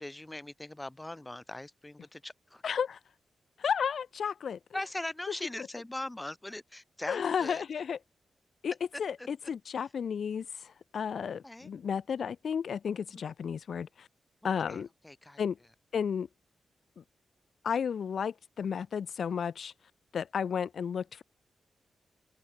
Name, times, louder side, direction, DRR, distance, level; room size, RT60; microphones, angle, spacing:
voice 1, 0.0-2.6 4.7-7.6 8.9-9.3 11.4-11.7 14.4-15.4, left 1 dB, 10° left, 6.8 m, -41 dB
voice 2, 2.6-3.0 3.6-4.6 7.1-8.0 8.6-8.7 9.0-14.1 14.4-14.9 15.4-15.6 15.9-16.3 17.0-17.1 17.6-19.7 20.1-21.2, left 7 dB, 65° left, 0.7 m, -33 dB
open air
wide cardioid pair, 140°, 0 cm